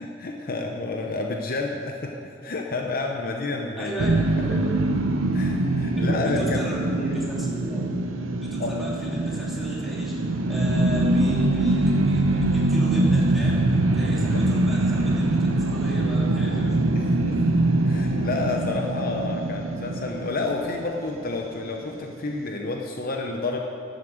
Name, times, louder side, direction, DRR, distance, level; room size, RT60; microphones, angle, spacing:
voice 1, 0.0-2.1 2.4-4.1 5.3-6.6 8.6-8.7 14.1-14.4 16.9-17.4 17.8-23.6, left 3 dB, 50° left, 2 dB, 0.8 m, -30 dB
voice 2, 3.7-4.6 5.9-8.0 8.4-13.6 13.9-16.8 17.0-17.2 18.0-18.1, right 1 dB, ahead, -7 dB, 2.9 m, -34 dB
sound 1, 4.0-21.2, right 2 dB, 90° right, 0.8 m, -23 dB
12.0 x 7.5 x 7.7 m, 2.6 s
head